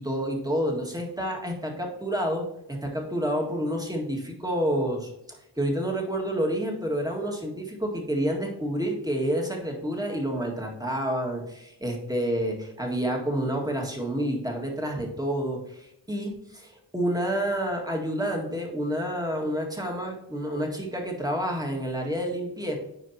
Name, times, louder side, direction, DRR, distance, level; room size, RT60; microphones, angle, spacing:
voice 1, 0.0-2.5 2.8-22.8, equal, 10° right, 0 dB, 1.9 m, -29 dB
9.7 x 4.6 x 2.9 m, 0.83 s
cardioid pair, 60°, 41 cm